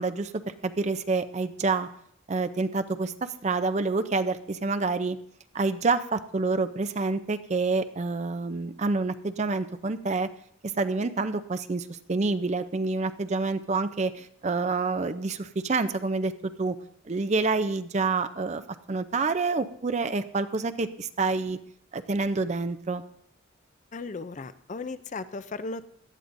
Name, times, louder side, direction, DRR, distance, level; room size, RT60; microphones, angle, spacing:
voice 1, 0.0-1.9 2.3-5.2 5.5-10.3 10.6-16.8 17.1-18.6 18.9-21.6 21.9-23.0, right 3 dB, 35° right, 11 dB, 0.4 m, -28 dB
voice 2, 23.9-25.9, left 3 dB, 35° left, 13 dB, 0.4 m, -36 dB
17.5 x 12.5 x 2.6 m, 0.68 s
head